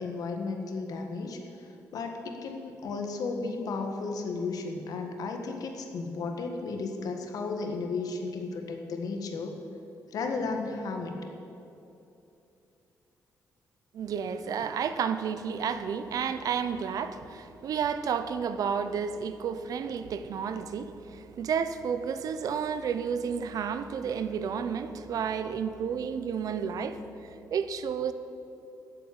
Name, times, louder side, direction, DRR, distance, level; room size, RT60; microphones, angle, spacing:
voice 1, 0.0-1.4 1.9-9.5 10.1-11.2, left 4 dB, 70° left, 1.7 m, -34 dB
voice 2, 13.9-27.1 27.5-28.1, right 7 dB, 70° right, 0.8 m, -31 dB
13.0 x 7.8 x 8.7 m
cardioid pair, 130°, 6 cm